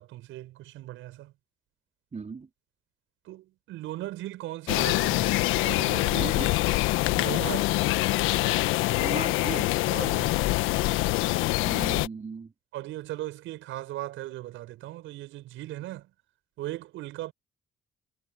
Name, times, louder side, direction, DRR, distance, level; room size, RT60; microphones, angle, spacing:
voice 1, 0.0-1.3 3.2-6.4 7.1-7.8 9.8-10.4 12.7-16.1 16.6-17.3, right 15 dB, 75° right, 6.5 m, -38 dB
voice 2, 2.1-2.5 6.2-6.5 8.9-9.7 11.6-12.5, right 4 dB, 35° right, 4.2 m, -37 dB
sound 1, 4.7-12.1, left 19 dB, 75° left, 1.5 m, -25 dB
hypercardioid pair, 50°, 21 cm